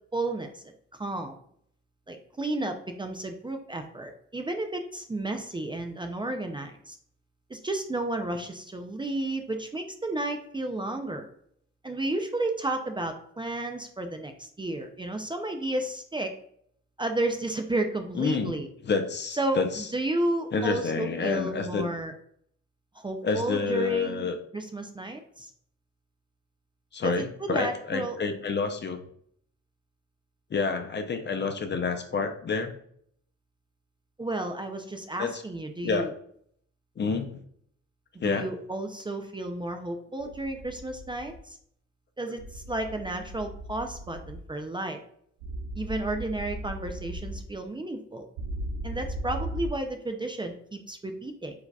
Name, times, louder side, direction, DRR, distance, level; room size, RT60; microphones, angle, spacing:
voice 1, 0.1-0.6 0.9-1.4 2.1-7.0 7.5-11.3 11.8-16.3 17.0-18.7 19.4-22.1 22.9-25.5 27.0-28.2 34.2-36.1 38.2-41.6 42.2-45.0 45.8-48.3 48.8-51.5, right 2 dB, 15° right, 5 dB, 0.4 m, -32 dB
voice 2, 18.1-18.6 18.8-19.9 20.5-21.9 23.2-24.4 26.9-29.0 30.5-32.8 35.2-35.4 35.8-36.1 37.0-37.4 38.2-38.5, left 4 dB, 35° left, 6 dB, 0.6 m, -28 dB
sound 1, 40.2-41.4 42.4-44.4 45.4-47.4 48.4-49.7, right 1 dB, 80° right, 0.7 m, -37 dB
4.8 x 3.9 x 2.3 m, 0.65 s
cardioid pair, 90°, 30 cm